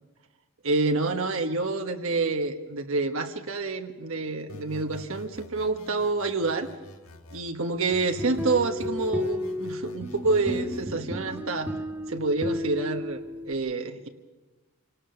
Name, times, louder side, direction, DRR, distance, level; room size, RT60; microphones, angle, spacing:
voice 1, 0.6-6.7 7.3-11.7 12.1-14.1, right 3 dB, 65° right, 5 dB, 1.3 m, -28 dB
sound 1, 4.5-7.5 7.9-10.9, left 1 dB, 70° left, 1.5 m, -47 dB
sound 2, 8.0-13.5, left 1 dB, 5° right, 1.9 m, -33 dB
26.5 x 18.5 x 7.0 m, 1.2 s
head